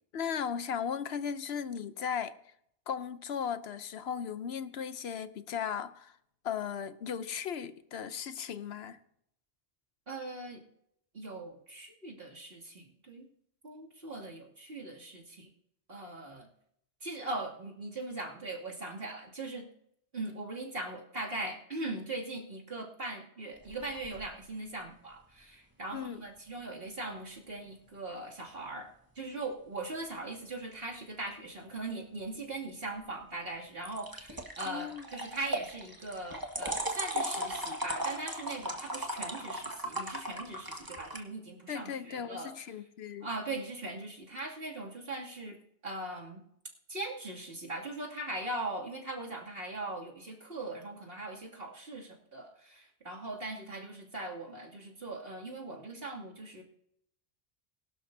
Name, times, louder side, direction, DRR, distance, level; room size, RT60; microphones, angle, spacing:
voice 1, 0.1-2.3 2.9-6.2 6.4-9.0 25.9-26.2 34.7-35.0 41.7-43.3, left 7 dB, 80° left, 1.0 m, -36 dB
voice 2, 10.1-10.6 11.1-13.3 13.6-15.5 15.9-16.5 17.0-19.7 20.1-42.5 43.2-46.4 46.9-56.6, right 2 dB, 65° right, 2.9 m, -40 dB
sound 1, 23.6-24.2 33.8-41.2, right 1 dB, 20° right, 1.7 m, -37 dB
22.0 x 12.0 x 2.7 m
omnidirectional pair, 1.0 m